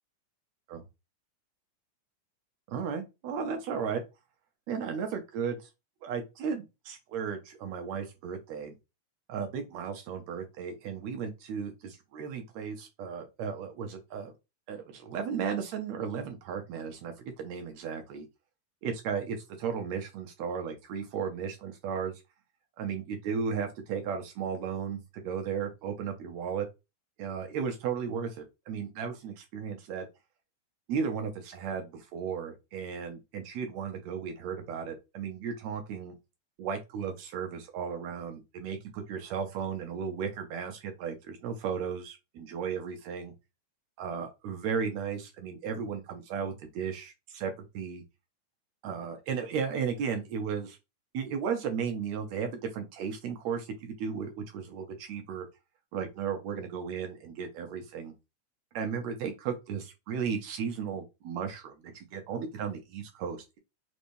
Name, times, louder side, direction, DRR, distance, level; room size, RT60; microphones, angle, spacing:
voice 1, 2.7-4.0 4.7-5.7 6.0-8.8 9.3-14.3 14.7-18.3 18.8-22.2 22.8-26.7 27.2-30.1 30.9-36.1 36.6-43.3 44.0-48.0 48.8-50.8 51.1-55.5 55.9-58.1 58.7-63.6, right 6 dB, 70° right, 1.9 m, -35 dB
5.2 x 3.3 x 2.6 m
omnidirectional pair, 3.5 m